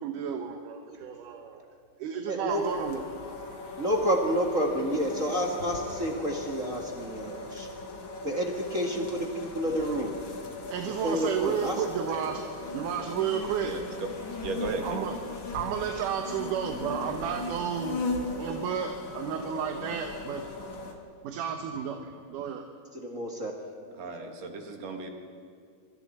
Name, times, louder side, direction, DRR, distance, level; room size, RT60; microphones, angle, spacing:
voice 1, 0.0-1.6 2.0-3.0 10.7-12.4 12.7-13.7 14.8-15.2 15.5-18.0 18.4-20.5 21.2-22.7, right 8 dB, 75° right, 4 dB, 2.5 m, -32 dB
voice 2, 2.3-2.6 3.8-7.7 8.2-10.1 11.0-11.8 23.0-23.5, equal, 35° right, 0 dB, 1.5 m, -29 dB
sound 1, 2.5-20.9, left 3 dB, 40° left, 2.3 m, -38 dB
voice 3, 14.4-15.0 23.9-25.1, right 3 dB, 55° right, 3 dB, 2.9 m, -35 dB
26.0 x 24.5 x 4.3 m, 2.2 s
omnidirectional pair, 3.9 m